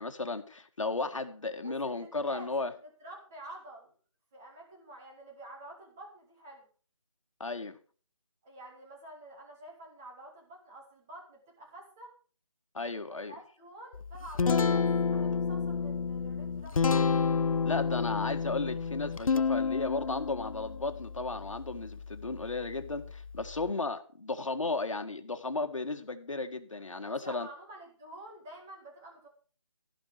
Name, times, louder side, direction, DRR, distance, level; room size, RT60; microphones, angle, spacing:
voice 1, 0.0-2.7 7.4-7.8 12.7-13.3 17.7-27.5, left 3 dB, 65° left, 6 dB, 1.9 m, -34 dB
voice 2, 1.6-2.5 2.8-3.9 4.3-6.7 8.4-12.1 13.1-17.1 27.1-29.3, right 1 dB, 5° right, -2 dB, 0.8 m, -49 dB
Guitar, 13.9-23.7, left 5 dB, 85° left, 0.5 m, -30 dB
15.0 x 5.6 x 6.5 m, 0.40 s
figure-of-eight pair, 175°, 17 cm